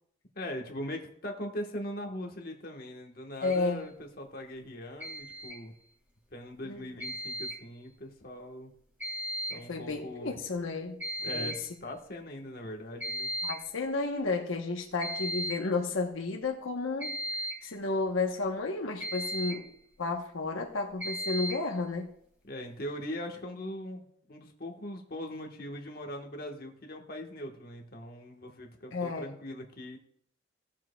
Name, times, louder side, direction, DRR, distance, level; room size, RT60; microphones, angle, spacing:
voice 1, 0.3-5.7 6.3-8.7 9.5-10.4 11.2-13.3 22.5-30.0, left 1 dB, 45° left, 2 dB, 1.3 m, -40 dB
voice 2, 3.4-3.8 6.7-6.8 9.5-11.5 13.4-17.2 17.6-19.7 20.0-22.1 28.9-29.3, left 3 dB, 80° left, 2 dB, 1.0 m, -32 dB
sound 1, 3.4-3.6 5.0-5.6 7.0-7.6 9.0-9.6 9.9-10.0 10.6-10.7 11.0-11.6 13.0-13.6 15.0-15.7 17.0-17.7 19.0-19.7 21.0-21.7, equal, 10° right, 2.2 m, -36 dB
16.5 x 7.3 x 2.3 m, 0.67 s
head